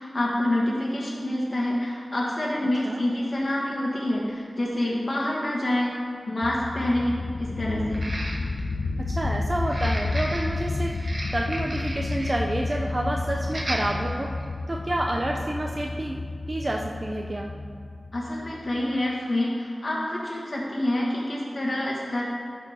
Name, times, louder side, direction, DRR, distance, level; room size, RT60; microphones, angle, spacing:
voice 1, 0.0-5.9 6.3-8.1 18.1-22.3, left 1 dB, 45° left, -5 dB, 1.4 m, -27 dB
sound 1, 3.2-3.3 4.3-4.4 4.8-4.9 7.9-8.7 9.6-12.4 12.7-12.9 13.5-13.8 14.4-14.5, right 1 dB, 50° right, 1.4 m, -35 dB
sound 2, 6.4-18.8, left 2 dB, 65° left, 0.6 m, -31 dB
voice 2, 9.1-10.9 11.3-14.3 14.7-16.2 16.5-17.5, right 1 dB, 30° right, 0 dB, 0.6 m, -29 dB
12.5 x 4.7 x 4.9 m, 2.2 s
wide cardioid pair, 65°, 0 cm